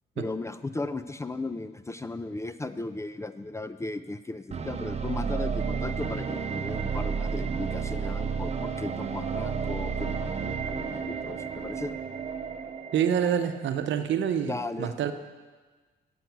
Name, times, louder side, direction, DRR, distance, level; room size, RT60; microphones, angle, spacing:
voice 1, 0.2-11.9 14.4-15.0, left 2 dB, 15° left, 12 dB, 0.4 m, -36 dB
sound 1, 4.5-13.6, right 6 dB, 35° right, 0.7 m, -32 dB
voice 2, 12.9-15.1, right 8 dB, 70° right, 8 dB, 0.8 m, -27 dB
9.1 x 7.8 x 6.0 m, 1.4 s
cardioid pair, 90°, 20 cm